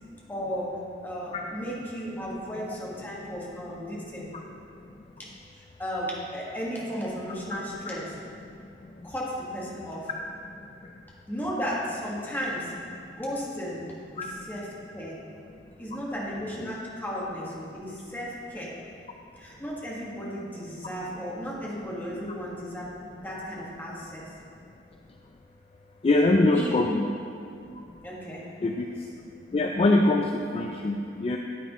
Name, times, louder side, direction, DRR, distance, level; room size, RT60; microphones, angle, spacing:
voice 1, 0.3-0.7 1.0-4.3 5.2-5.3 5.6-8.0 9.0-10.1 11.3-12.7 13.0-13.9 14.1-15.2 15.8-18.7 19.3-24.2 26.5-26.7 28.0-28.5, equal, 10° left, -6 dB, 1.6 m, -35 dB
voice 2, 26.0-27.1 28.6-28.9 29.5-31.4, left 2 dB, 35° left, 2 dB, 0.4 m, -23 dB
9.4 x 9.0 x 3.0 m, 2.4 s
head